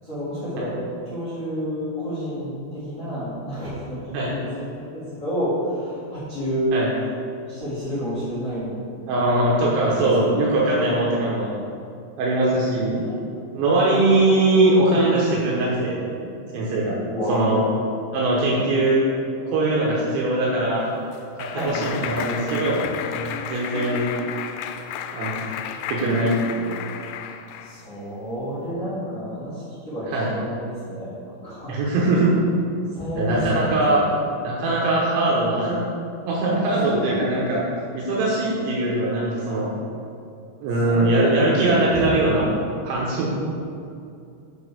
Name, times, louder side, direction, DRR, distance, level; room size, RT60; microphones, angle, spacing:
voice 1, 0.0-0.8 1.0-4.5 4.7-6.7 7.5-8.8 9.9-10.5 12.8-13.2 17.1-17.5 21.5-22.0 27.6-31.1 31.4-31.8 32.9-34.1 36.6-37.4 40.8-42.1 43.3-43.5, equal, 35° left, -13 dB, 1.2 m, -30 dB
voice 2, 9.1-11.5 12.2-13.0 13.5-16.1 16.5-17.0 17.3-17.6 18.1-19.0 19.5-20.9 21.4-22.9 23.4-24.1 25.1-25.3 25.9-26.8 30.1-30.3 31.7-32.3 33.2-34.1 34.4-35.8 36.3-37.6 37.9-39.7 40.6-42.5 42.8-43.3, right 2 dB, 80° right, -5 dB, 3.1 m, -21 dB
Clapping, 20.6-27.8, left 8 dB, 85° left, 2.9 m, -32 dB
6.9 x 5.3 x 6.7 m, 2.5 s
omnidirectional pair, 5.3 m